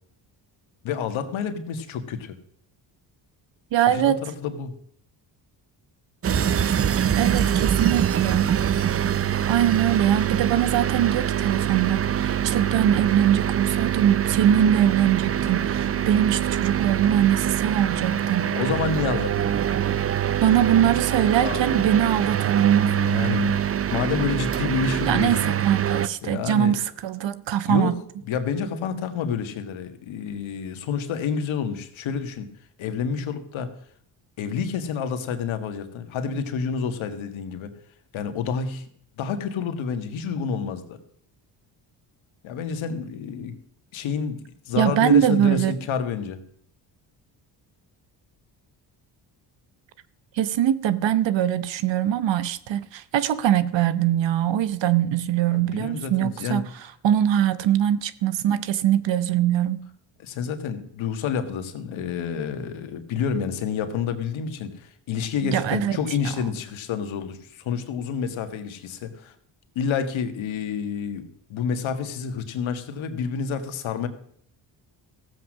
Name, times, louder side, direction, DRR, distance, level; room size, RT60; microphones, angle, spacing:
voice 1, 0.8-2.4 3.9-4.7 9.7-9.8 18.5-19.5 21.4-22.2 22.9-25.6 26.2-26.8 27.7-28.0 28.3-32.5 32.8-33.7 34.4-37.7 38.1-38.9 39.2-41.0 42.4-43.6 43.9-44.4 44.7-46.4 55.5-56.6 60.2-69.3 69.8-71.2 71.5-74.1, left 6 dB, 75° left, 1.7 m, -29 dB
voice 2, 3.7-4.2 7.2-8.5 9.5-18.5 20.4-22.9 25.0-27.9 44.8-45.7 50.3-56.7 57.0-59.8 65.4-66.0, right 10 dB, 65° right, 1.0 m, -22 dB
sound 1, 6.2-26.1, right 9 dB, 30° right, 0.5 m, -24 dB
15.0 x 7.7 x 6.4 m
supercardioid pair, 70°, 48 cm